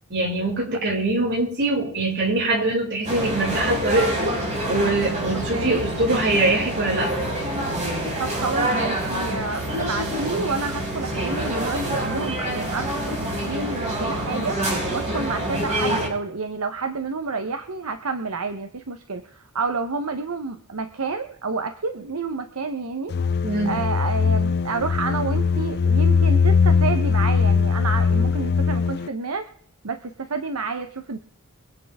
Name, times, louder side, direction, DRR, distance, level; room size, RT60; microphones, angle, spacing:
voice 1, 0.1-4.4 4.7-7.2 23.4-23.8, right 2 dB, 50° right, -2 dB, 5.8 m, -23 dB
sound 1, 3.0-16.1, right 1 dB, 30° right, 5.3 m, -26 dB
voice 2, 5.5-5.8 8.2-14.6 14.9-23.4 23.6-29.5 29.8-31.2, right 4 dB, 80° right, 7 dB, 1.0 m, -29 dB
sound 2, 23.1-29.1, left 5 dB, 50° left, 0.4 m, -20 dB
25.0 x 8.7 x 3.6 m, 0.67 s
head